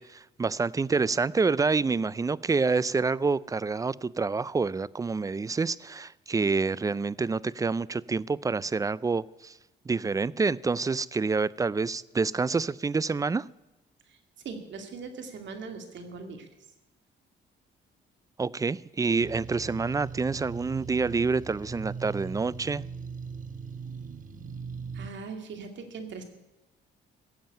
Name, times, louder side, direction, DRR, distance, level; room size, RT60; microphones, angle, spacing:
voice 1, 0.0-9.5 9.9-13.5 18.4-22.8, right 4 dB, 15° right, 21 dB, 0.4 m, -27 dB
voice 2, 14.4-16.5 24.9-26.2, right 4 dB, 65° right, 6 dB, 2.5 m, -40 dB
sound 1, 19.2-25.1, right 5 dB, 40° right, 1.1 m, -39 dB
16.0 x 7.5 x 8.9 m, 1.0 s
cardioid pair, 90°, 20 cm